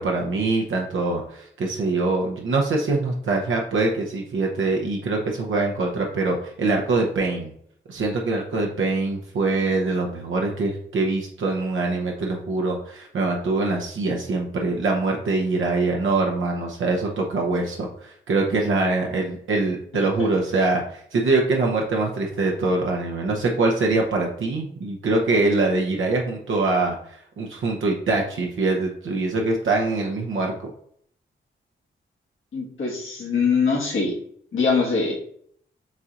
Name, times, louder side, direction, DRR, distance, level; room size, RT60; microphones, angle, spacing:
voice 1, 0.0-7.5 7.9-30.7, right 3 dB, 70° right, 0 dB, 0.8 m, -24 dB
voice 2, 32.5-34.1 34.5-35.1, left 5 dB, 75° left, -5 dB, 1.5 m, -22 dB
7.2 x 2.8 x 2.4 m, 0.65 s
cardioid pair, 55°, 21 cm